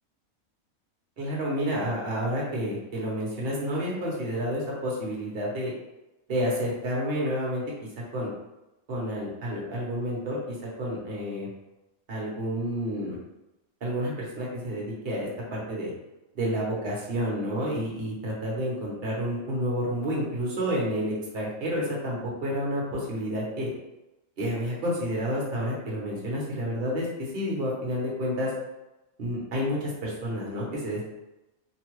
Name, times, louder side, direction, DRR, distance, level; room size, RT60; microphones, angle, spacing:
voice 1, 1.2-5.7 6.3-7.6 8.1-8.3 8.9-11.5 12.1-13.2 13.8-15.9 16.3-23.7 24.4-27.0 27.3-28.5 29.2-31.0, equal, 50° right, -4 dB, 1.1 m, -30 dB
3.0 x 2.3 x 3.0 m, 0.97 s
omnidirectional pair, 1.4 m